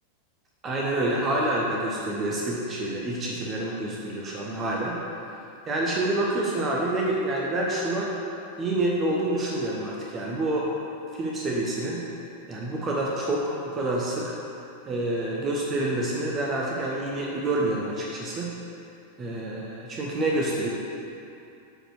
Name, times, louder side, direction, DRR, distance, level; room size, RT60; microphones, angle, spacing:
voice 1, 0.6-5.0 5.7-8.1 8.6-10.7 11.2-12.0 12.5-14.3 14.9-18.5 19.2-20.7, right 1 dB, 25° right, -3 dB, 1.0 m, -27 dB
8.0 x 4.4 x 6.3 m, 2.7 s
figure-of-eight pair, 90°, 0 cm